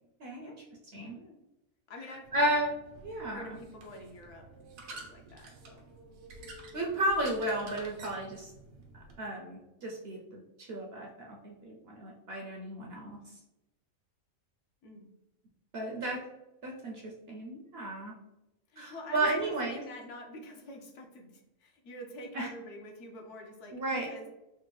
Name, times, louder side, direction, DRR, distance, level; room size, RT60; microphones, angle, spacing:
voice 1, 0.2-0.5 0.9-1.2 2.3-2.7 3.0-3.5 6.7-8.5 9.2-13.2 15.7-16.2 16.6-18.1 18.8-19.8 22.3-22.5 23.7-24.1, right 1 dB, 65° right, -1 dB, 0.6 m, -33 dB
voice 2, 1.9-2.7 3.3-4.5 4.9-5.9 14.8-15.1 18.7-24.3, left 1 dB, 65° left, 2 dB, 0.9 m, -46 dB
sound 1, 2.2-9.2, right 2 dB, 90° right, 1.1 m, -50 dB
3.4 x 2.2 x 3.0 m, 0.94 s
omnidirectional pair, 1.4 m